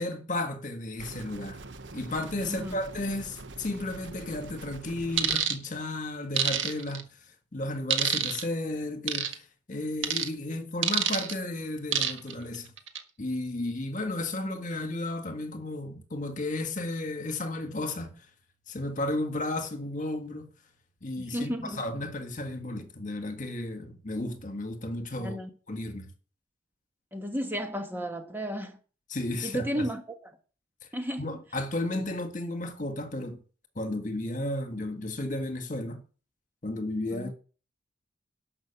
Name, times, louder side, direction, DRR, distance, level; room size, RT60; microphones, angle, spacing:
voice 1, 0.0-1.6 1.9-7.0 7.5-12.7 13.2-18.2 18.7-20.5 21.0-25.4 25.7-26.1 29.1-29.9 31.2-33.4 33.8-36.0 36.6-37.3, left 2 dB, 40° left, 1.9 m, -33 dB
sound 1, 1.0-5.4, right 2 dB, 70° right, 1.1 m, -44 dB
voice 2, 2.4-2.8 21.2-21.8 25.2-25.5 27.1-28.8 29.4-30.3 30.9-31.3 37.1-37.3, equal, 10° right, 1.3 m, -33 dB
sound 2, 5.2-5.6 6.4-7.0 7.9-8.4 9.1-9.3 10.0-10.3 10.8-11.3 11.9-12.3 12.8-13.0, right 9 dB, 85° right, 1.6 m, -26 dB
12.0 x 6.2 x 7.2 m
head